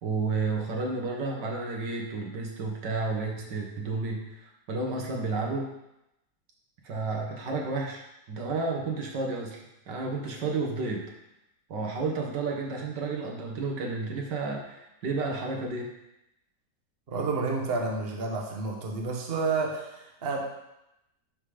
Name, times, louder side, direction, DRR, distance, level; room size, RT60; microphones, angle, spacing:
voice 1, 0.0-5.7 6.8-11.0 11.7-15.9, right 3 dB, 90° right, 0 dB, 2.0 m, -31 dB
voice 2, 17.1-20.4, right 3 dB, 40° right, 0 dB, 1.3 m, -30 dB
11.0 x 3.9 x 5.0 m, 0.88 s
omnidirectional pair, 1.8 m